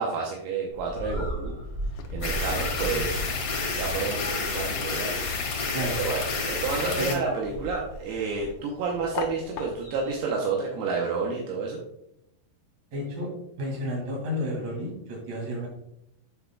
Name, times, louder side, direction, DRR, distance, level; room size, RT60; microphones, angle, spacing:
voice 1, 0.0-1.6 2.1-3.4 3.7-5.6 6.0-11.8, right 4 dB, 80° right, -1 dB, 2.6 m, -30 dB
Bird, 0.7-10.3, equal, 10° right, 1.7 m, -38 dB
sound 1, 1.6-10.1, left 7 dB, 85° left, 2.9 m, -44 dB
sound 2, 2.2-7.1, left 4 dB, 65° left, 1.4 m, -30 dB
voice 2, 7.0-7.3 12.9-13.3 13.6-15.7, equal, 45° right, -1 dB, 3.0 m, -31 dB
9.9 x 5.7 x 2.2 m, 0.78 s
omnidirectional pair, 4.9 m